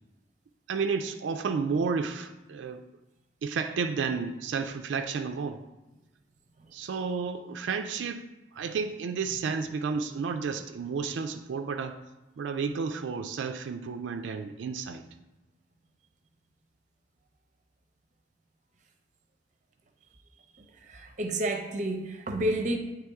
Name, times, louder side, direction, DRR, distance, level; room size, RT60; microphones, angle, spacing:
voice 1, 0.7-2.8 3.4-5.6 6.7-8.3 8.5-12.0 12.4-15.0, right 5 dB, 85° right, 6 dB, 0.3 m, -31 dB
voice 2, 20.5-22.8, right 1 dB, 40° right, 5 dB, 0.6 m, -31 dB
8.8 x 3.4 x 3.5 m, 1.0 s
head